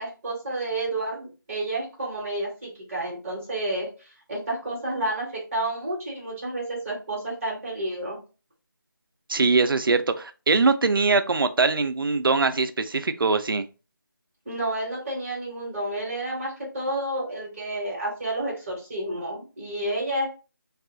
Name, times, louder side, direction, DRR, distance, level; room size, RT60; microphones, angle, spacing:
voice 1, 0.0-8.2 14.4-20.2, right 1 dB, 10° right, -5 dB, 0.7 m, -30 dB
voice 2, 9.3-13.6, right 4 dB, 80° right, 10 dB, 0.4 m, -22 dB
2.7 x 2.4 x 3.5 m, 0.33 s
figure-of-eight pair, 170°, 12 cm